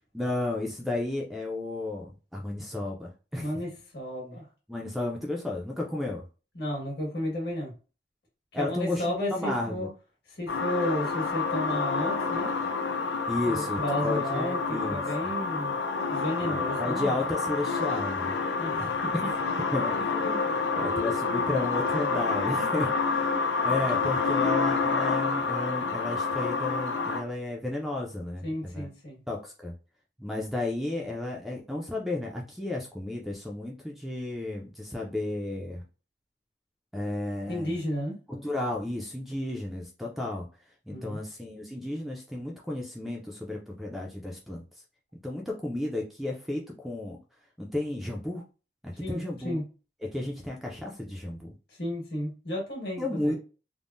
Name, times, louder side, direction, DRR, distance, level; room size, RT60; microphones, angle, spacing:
voice 1, 0.1-3.5 4.7-6.2 8.5-9.9 13.3-15.0 16.4-18.4 19.1-19.3 19.7-20.5 20.8-22.9 23.6-28.9 29.3-29.7 30.2-35.8 36.9-37.8 38.3-40.5 40.9-44.6 45.2-47.2 47.6-48.4 48.8-49.6 50.0-51.5 53.0-53.3, left 2 dB, ahead, -1 dB, 0.3 m, -33 dB
voice 2, 3.4-4.4 6.5-7.7 8.5-9.9 10.3-12.5 13.5-15.7 16.1-17.1 18.6-19.3 23.3-23.4 28.4-29.2 37.5-38.2 40.9-41.2 49.0-49.6 51.8-53.3, equal, 60° left, -2 dB, 1.5 m, -33 dB
sound 1, 10.5-27.2, left 4 dB, 85° left, 0.5 m, -28 dB
3.5 x 2.0 x 2.5 m, 0.34 s
head